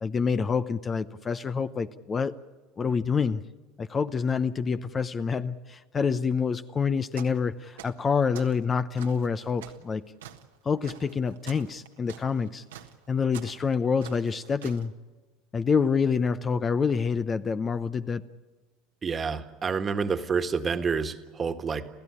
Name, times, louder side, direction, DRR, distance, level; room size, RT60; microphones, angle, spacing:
voice 1, 0.0-2.4 2.8-3.4 3.8-10.0 10.6-12.6 13.1-14.9 15.5-18.2, left 5 dB, 30° left, 12 dB, 0.8 m, -27 dB
sound 1, 7.1-7.4 7.7-8.6 9.0-14.9, right 11 dB, 85° right, 1.5 m, -46 dB
voice 2, 19.0-21.9, right 5 dB, 30° right, 8 dB, 1.7 m, -28 dB
29.0 x 15.5 x 9.9 m, 1.2 s
hypercardioid pair, 90°, 0 cm